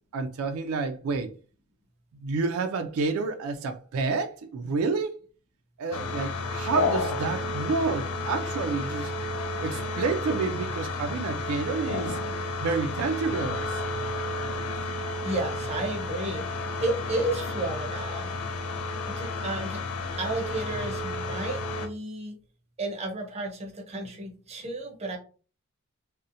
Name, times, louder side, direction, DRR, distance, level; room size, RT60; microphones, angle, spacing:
voice 1, 0.1-1.3 2.1-5.2 5.8-9.1 9.6-12.2 12.6-13.8, right 4 dB, 85° right, 0.3 m, -29 dB
sound 1, 5.9-21.9, left 2 dB, 85° left, 0.4 m, -31 dB
voice 2, 15.2-18.3 19.2-19.8 20.2-22.4 22.8-25.2, right 2 dB, 30° right, 0.6 m, -32 dB
2.7 x 2.0 x 2.5 m
head